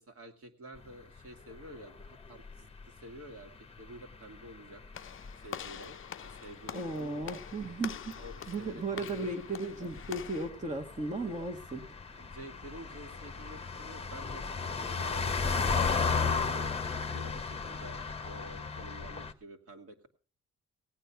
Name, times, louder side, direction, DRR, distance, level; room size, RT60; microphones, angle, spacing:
voice 1, 0.0-3.5 3.8-4.8 5.4-7.4 8.2-9.9 12.1-15.4 15.7-20.1, right 1 dB, 50° right, 5 dB, 2.2 m, -50 dB
sound 1, 0.8-19.3, left 5 dB, 20° left, 1.0 m, -36 dB
Walk footsteps / Slam, 4.9-10.5, left 9 dB, 45° left, 0.6 m, -45 dB
voice 2, 6.7-8.1 8.5-12.4, right 2 dB, 25° right, 4 dB, 1.5 m, -36 dB
17.0 x 9.0 x 5.7 m, 0.40 s
cardioid pair, 90°, 30 cm